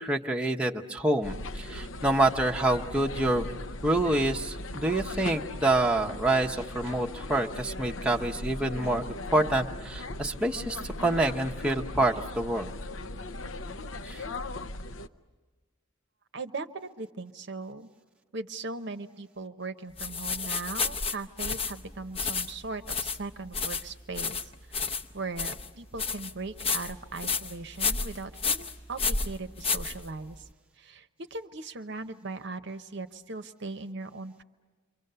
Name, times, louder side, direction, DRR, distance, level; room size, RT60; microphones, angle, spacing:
voice 1, 0.0-9.0 9.3-12.7 14.1-14.2, right 2 dB, 5° right, 0 dB, 0.8 m, -27 dB
sound 1, 1.2-15.1, left 2 dB, 65° left, 0.7 m, -38 dB
voice 2, 16.3-17.9 18.3-30.4 30.8-34.4, right 3 dB, 55° right, 8 dB, 0.8 m, -39 dB
sound 2, 20.0-30.4, left 5 dB, 30° left, 0.8 m, -32 dB
29.0 x 24.5 x 6.8 m, 1.4 s
head